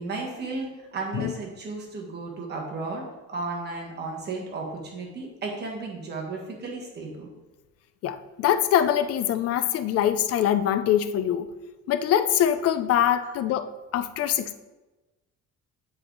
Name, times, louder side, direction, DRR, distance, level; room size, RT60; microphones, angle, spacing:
voice 1, 0.0-3.0 3.3-7.3 13.2-13.3, right 3 dB, 35° right, -1 dB, 1.6 m, -34 dB
voice 2, 8.0-11.5 11.9-13.7 13.9-14.6, left 10 dB, 50° left, 11 dB, 0.5 m, -23 dB
7.8 x 4.8 x 3.9 m, 1.1 s
cardioid pair, 160°, 30 cm